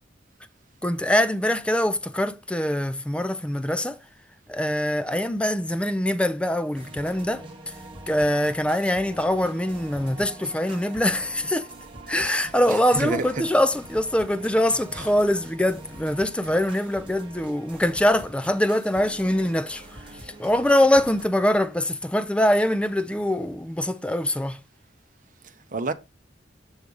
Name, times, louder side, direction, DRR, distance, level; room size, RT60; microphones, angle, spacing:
voice 1, 0.8-4.0 4.5-7.4 8.1-11.7 12.1-19.8 20.4-24.6, left 1 dB, 5° left, 0.5 m, -23 dB
sound 1, 6.7-21.3, right 2 dB, 30° right, 1.4 m, -44 dB
voice 2, 12.7-13.4 14.9-15.1 25.4-25.9, right 3 dB, 45° right, 0.8 m, -29 dB
8.0 x 3.2 x 5.2 m
head